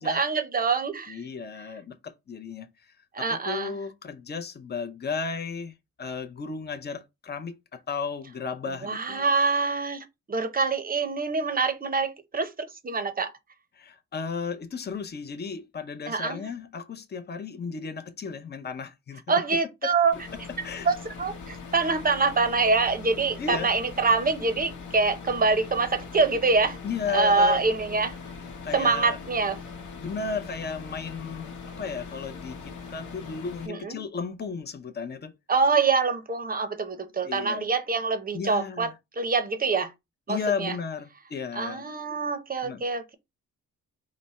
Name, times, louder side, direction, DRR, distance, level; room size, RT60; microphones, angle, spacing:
voice 1, 0.0-1.2 3.1-3.7 8.8-12.5 12.8-13.3 16.1-16.4 19.3-20.1 20.8-26.8 27.1-28.2 28.7-29.6 33.7-34.0 35.5-38.9 39.2-39.9 40.3-40.7 41.5-43.1, right 4 dB, 30° right, 0.7 m, -25 dB
voice 2, 1.1-2.7 3.2-9.2 13.8-19.4 19.8-19.9 20.6-20.9 23.2-23.7 26.8-27.6 28.6-29.2 30.0-31.5 31.8-35.3 37.2-37.7 38.3-38.9 40.3-41.9 42.6-42.8, left 5 dB, 35° left, 0.6 m, -34 dB
sound 1, 20.1-33.7, left 5 dB, 75° left, 1.0 m, -41 dB
4.9 x 2.1 x 4.1 m
wide cardioid pair, 140°, 31 cm